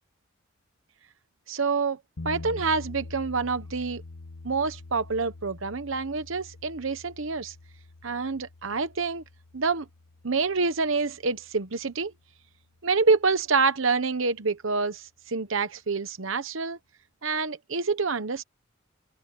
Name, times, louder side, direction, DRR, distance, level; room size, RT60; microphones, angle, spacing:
voice 1, 1.5-2.0 2.2-4.0 4.4-7.5 8.0-9.2 9.5-9.9 10.2-12.1 12.8-16.8 17.2-18.4, right 4 dB, 70° right, 1.0 m, -27 dB
sound 1, 2.2-12.2, left 2 dB, 85° left, 1.3 m, -45 dB
open air
head